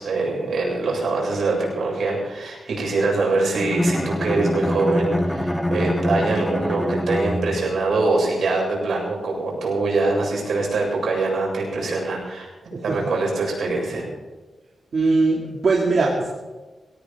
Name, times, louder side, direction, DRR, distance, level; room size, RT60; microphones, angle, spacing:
voice 1, 0.0-12.5 12.8-14.0, right 3 dB, 70° right, -2 dB, 7.3 m, -23 dB
Bowed string instrument, 3.6-7.9, equal, 5° left, 1.0 m, -24 dB
voice 2, 14.9-16.3, right 3 dB, 50° right, -3 dB, 2.6 m, -20 dB
21.5 x 17.0 x 3.7 m, 1.3 s
wide cardioid pair, 160°, 0 cm